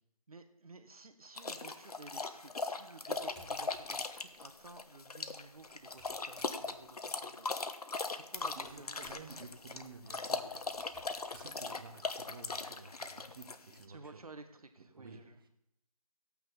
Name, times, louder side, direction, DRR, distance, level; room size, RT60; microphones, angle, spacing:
voice 1, 0.3-7.7 8.1-9.1 13.9-15.4, right 3 dB, 65° right, 8 dB, 1.6 m, -54 dB
sound 1, 1.4-13.8, left 3 dB, 70° left, 1.1 m, -39 dB
sound 2, 3.1-6.9 8.3-12.5, equal, 5° left, 1.3 m, -62 dB
voice 2, 8.5-14.2 14.8-15.5, right 4 dB, 35° right, 7 dB, 1.4 m, -53 dB
15.5 x 9.0 x 4.1 m, 0.79 s
figure-of-eight pair, 160°, 20 cm